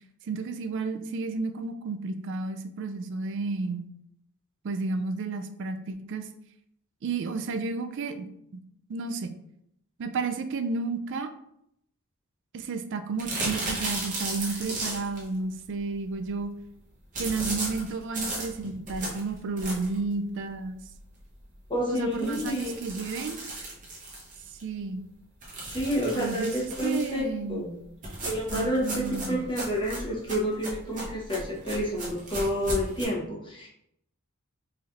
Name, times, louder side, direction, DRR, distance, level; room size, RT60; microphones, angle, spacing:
voice 1, 0.2-3.8 4.6-6.3 7.0-8.3 8.9-9.3 10.0-11.3 12.5-16.5 17.2-20.8 21.9-23.5 24.6-25.0 26.1-27.7 28.5-29.4, right 4 dB, 55° right, 8 dB, 0.4 m, -32 dB
sound 1, 13.2-15.3 17.1-20.1 20.5-20.6 20.9-21.0 21.3-21.4 22.1-24.6 25.4-27.2 28.0-33.1, right 2 dB, 35° right, 1.0 m, -35 dB
voice 2, 21.7-23.0 25.7-27.2 27.5-27.7 28.2-33.7, equal, 20° left, -3 dB, 1.0 m, -29 dB
4.1 x 3.1 x 2.5 m, 0.74 s
head